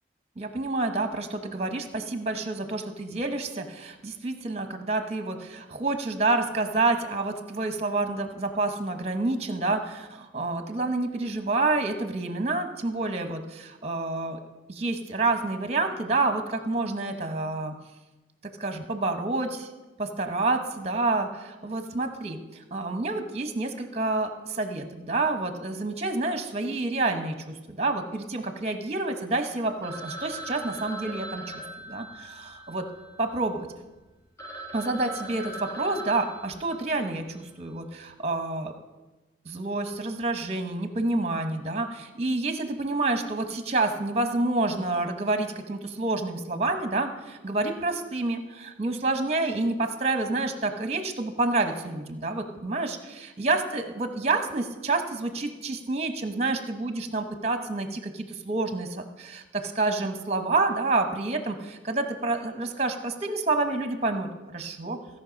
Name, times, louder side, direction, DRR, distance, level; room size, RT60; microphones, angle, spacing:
voice 1, 0.4-14.4 14.7-17.7 18.6-19.7 20.0-32.3 32.7-32.8 33.2-33.7 34.7-38.7 39.4-65.0, right 2 dB, 35° right, 7 dB, 0.9 m, -28 dB
Telephone, 29.8-33.6 34.1-34.2 34.4-37.3, right 2 dB, 15° left, 1.2 m, -40 dB
16.5 x 5.5 x 5.2 m, 1.1 s
head